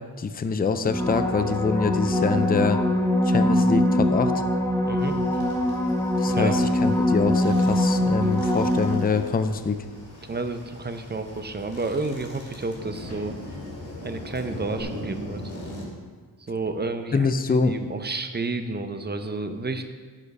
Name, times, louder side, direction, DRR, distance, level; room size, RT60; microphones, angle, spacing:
voice 1, 0.2-2.8 3.3-4.3 6.2-9.8 17.1-17.8, left 5 dB, 25° left, 9 dB, 0.4 m, -25 dB
sound 1, 0.8-9.5 14.8-14.9, left 1 dB, 10° left, 0.8 m, -23 dB
voice 2, 4.9-5.2 6.3-6.5 10.3-13.4 14.0-15.4 16.4-17.3 17.7-19.8, right 3 dB, 25° right, 8 dB, 0.6 m, -30 dB
sound 2, 5.0-15.9, left 1 dB, 65° left, 2.9 m, -40 dB
11.0 x 5.0 x 5.3 m, 1.5 s
wide cardioid pair, 140°, 41 cm